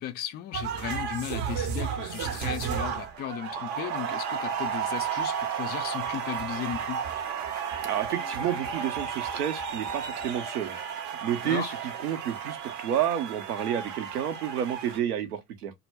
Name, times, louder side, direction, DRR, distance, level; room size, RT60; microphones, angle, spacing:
voice 1, 0.0-7.0 11.4-11.7, left 10 dB, 25° left, 0.3 m, -35 dB
sound 1, 0.5-15.0, right 7 dB, 40° right, 0.7 m, -33 dB
voice 2, 7.8-10.8 11.2-15.7, right 10 dB, 75° right, 0.8 m, -30 dB
2.1 x 2.1 x 3.3 m
figure-of-eight pair, 70°, 46 cm